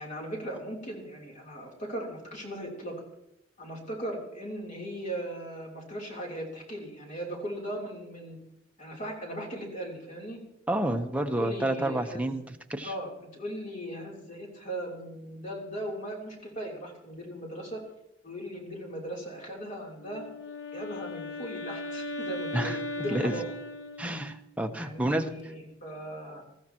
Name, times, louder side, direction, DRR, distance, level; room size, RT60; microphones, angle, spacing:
voice 1, 0.0-3.0 3.6-8.4 8.8-10.4 11.4-12.4 12.8-17.8 18.2-20.2 20.7-23.5 24.8-26.4, right 1 dB, 45° left, -1 dB, 3.4 m, -38 dB
voice 2, 10.7-12.4 12.7-12.9 22.5-22.8 23.1-23.4 24.0-25.5, right 1 dB, 10° right, 4 dB, 0.9 m, -29 dB
Wind instrument woodwind instrument, 20.0-24.5, left 2 dB, 70° left, 0.9 m, -37 dB
20.5 x 14.0 x 3.0 m, 0.84 s
head